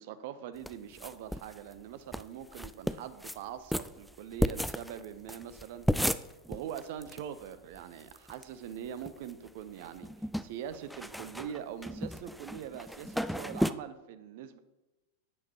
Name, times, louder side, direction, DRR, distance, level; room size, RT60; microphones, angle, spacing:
voice 1, 0.0-5.9 6.5-14.6, right 9 dB, 50° right, 12 dB, 0.7 m, -43 dB
sound 1, 0.7-1.5 1.8-1.9 2.1-2.2 2.5-3.4 3.7-7.2 7.5-7.6 7.7-8.4 8.9-9.5 9.8-13.7, equal, ahead, 0.3 m, -33 dB
11.0 x 9.0 x 2.9 m, 1.0 s
figure-of-eight pair, 90°, 0 cm